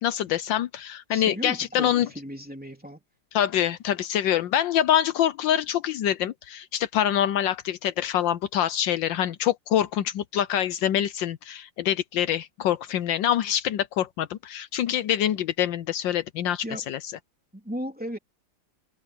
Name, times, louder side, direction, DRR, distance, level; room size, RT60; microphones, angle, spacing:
voice 1, 0.0-2.1 3.3-17.0, left 10 dB, 75° left, 1.4 m, -25 dB
voice 2, 1.1-3.0 16.6-16.9 17.5-18.2, equal, 5° right, 3.2 m, -36 dB
omnidirectional pair, 2.1 m